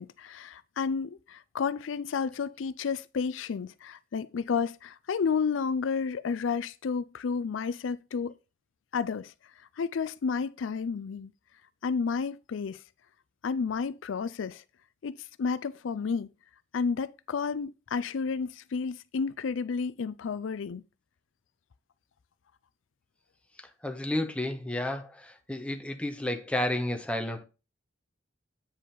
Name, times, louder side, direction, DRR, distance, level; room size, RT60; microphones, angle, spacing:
voice 1, 0.0-8.3 8.9-9.3 9.8-11.3 11.8-12.8 13.4-14.6 15.0-16.3 16.7-20.8, left 5 dB, 80° left, 0.4 m, -31 dB
voice 2, 23.6-27.4, left 1 dB, 5° left, 1.0 m, -32 dB
8.6 x 5.0 x 3.8 m
head